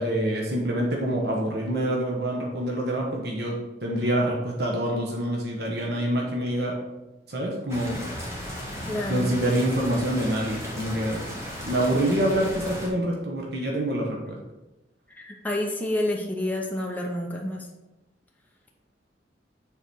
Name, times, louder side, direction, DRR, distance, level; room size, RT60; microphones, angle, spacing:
voice 1, 0.0-6.7 7.3-8.0 9.1-11.2 11.6-14.4, right 1 dB, 60° right, -1 dB, 1.1 m, -26 dB
sound 1, 7.7-12.9, equal, 15° right, 1.5 m, -36 dB
voice 2, 8.9-9.4 15.1-17.7, left 1 dB, 10° left, -1 dB, 0.7 m, -29 dB
6.8 x 3.9 x 4.7 m, 1.0 s
head